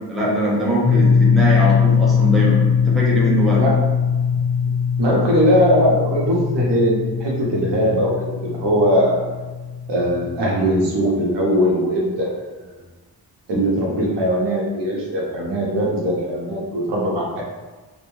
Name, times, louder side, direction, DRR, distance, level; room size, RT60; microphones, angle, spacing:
voice 1, 0.0-3.6, equal, ahead, -5 dB, 0.5 m, -21 dB
sound 1, 0.8-10.4, left 6 dB, 20° left, 1.1 m, -20 dB
voice 2, 5.0-8.1 8.4-9.4 9.9-12.3 13.5-17.4, equal, 90° right, -3 dB, 0.8 m, -20 dB
2.7 x 2.2 x 3.0 m, 1.3 s
wide cardioid pair, 145°, 41 cm